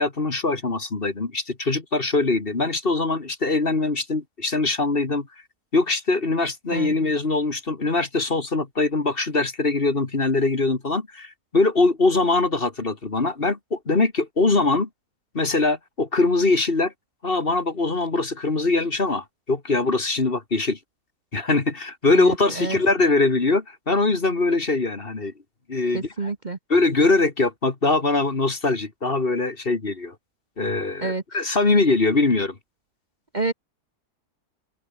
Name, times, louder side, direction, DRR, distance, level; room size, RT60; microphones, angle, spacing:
voice 1, 0.0-5.3 5.7-14.9 15.3-16.9 17.2-20.8 21.3-25.3 25.7-26.3 26.7-30.1 30.6-32.6, left 3 dB, 35° left, 2.2 m, -22 dB
voice 2, 22.1-22.8 25.9-26.6 31.0-31.2 33.3-33.5, right 3 dB, 30° right, 1.4 m, -28 dB
open air
omnidirectional pair, 1.7 m